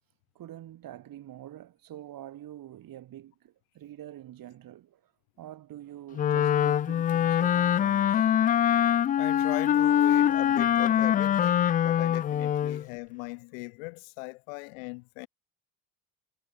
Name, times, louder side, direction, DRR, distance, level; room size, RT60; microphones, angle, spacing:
voice 1, 0.3-5.1 5.4-8.4 10.1-10.3, right 12 dB, 50° right, 5.1 m, -46 dB
Wind instrument woodwind instrument, 6.1-12.8, left 10 dB, 20° left, 0.3 m, -24 dB
voice 2, 9.2-15.3, left 28 dB, 70° left, 0.9 m, -39 dB
hypercardioid pair, 60°, 43 cm